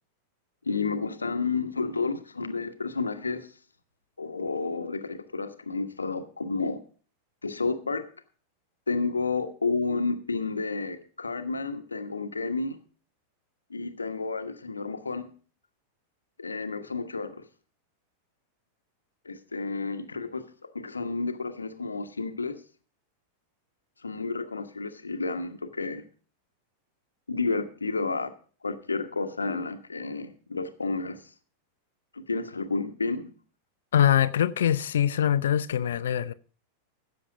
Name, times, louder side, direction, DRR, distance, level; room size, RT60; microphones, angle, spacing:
voice 1, 0.6-3.5 4.2-6.8 7.4-8.1 8.9-12.8 13.7-15.3 16.4-17.5 19.2-20.4 20.7-22.6 24.0-26.1 27.3-28.3 28.6-31.3 32.1-33.3, left 4 dB, 75° left, 1.2 m, -31 dB
voice 2, 33.9-36.3, left 10 dB, 60° left, 0.6 m, -23 dB
16.0 x 7.1 x 5.1 m
figure-of-eight pair, 90°, 0 cm